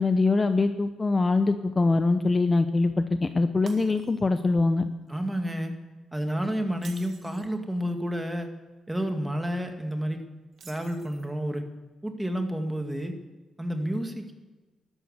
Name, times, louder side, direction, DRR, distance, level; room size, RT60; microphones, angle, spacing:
voice 1, 0.0-4.8, left 3 dB, 25° left, 9 dB, 0.7 m, -23 dB
Shatter, 3.7-4.4 4.9-5.1 6.7-7.5 10.5-11.4, right 6 dB, 55° right, 1.9 m, -50 dB
voice 2, 5.1-5.7 6.1-8.5 8.9-10.2 10.6-11.6 12.0-13.1 13.6-14.3, equal, 10° right, 5 dB, 2.0 m, -30 dB
13.0 x 12.0 x 8.0 m, 1.2 s
cardioid pair, 115°, 0 cm